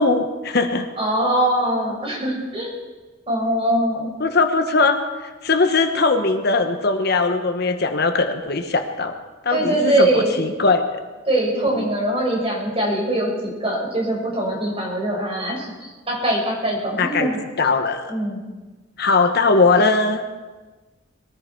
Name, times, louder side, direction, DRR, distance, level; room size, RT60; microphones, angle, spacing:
voice 1, 0.0-0.9 4.2-9.1 9.4-11.0 11.7-11.9 17.0-17.3 17.6-18.1 19.0-20.2, left 3 dB, 55° left, 6 dB, 1.1 m, -20 dB
voice 2, 1.0-2.7 3.3-4.1 9.5-10.4 11.3-17.4 18.1-18.4, right 1 dB, 30° right, -2 dB, 5.6 m, -22 dB
21.5 x 14.5 x 4.7 m, 1.3 s
head